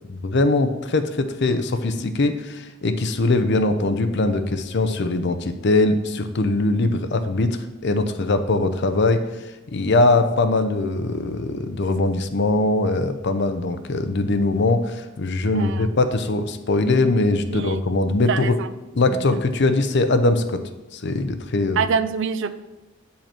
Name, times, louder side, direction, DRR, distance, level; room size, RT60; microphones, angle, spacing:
voice 1, 0.1-9.2 9.7-18.6 18.9-20.6 20.9-21.8, left 2 dB, 55° left, 9 dB, 0.6 m, -21 dB
voice 2, 15.5-15.9 17.5-17.8 18.3-18.7 19.1-19.4 21.8-22.5, right 6 dB, 60° right, 13 dB, 0.5 m, -25 dB
8.8 x 5.6 x 4.4 m, 1.0 s
head